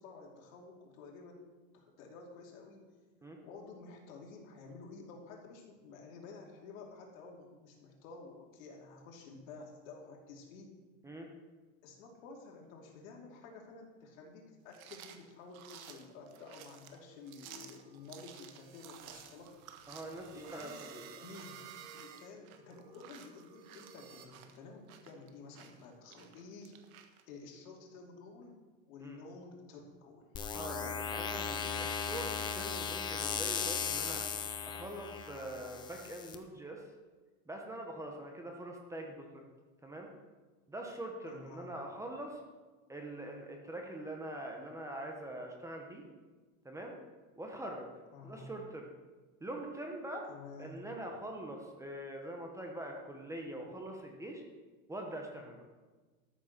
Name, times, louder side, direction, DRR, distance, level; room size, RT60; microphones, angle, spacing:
voice 1, 0.0-1.4 1.7-2.9 3.2-10.8 11.8-19.5 20.3-21.6 21.9-26.8 27.3-28.5 28.9-30.3 41.2-41.7 48.1-48.5 50.3-50.8, left 4 dB, 75° left, 0 dB, 3.0 m, -51 dB
sound 1, 14.7-27.2, right 9 dB, 85° right, 1.4 m, -55 dB
sound 2, 16.8-24.3, right 8 dB, 35° right, 1.1 m, -55 dB
voice 2, 19.9-21.2 29.0-29.2 30.5-34.2 34.6-36.9 37.5-39.4 39.8-40.1 40.7-42.4 42.9-46.0 46.6-46.9 47.4-47.9 48.2-48.9 49.4-50.2 50.6-54.4 54.9-55.7, right 1 dB, 5° right, 1 dB, 1.1 m, -43 dB
sound 3, 30.3-36.3, left 6 dB, 10° left, 0.3 m, -37 dB
13.0 x 6.5 x 6.6 m, 1.3 s
supercardioid pair, 155°, 41 cm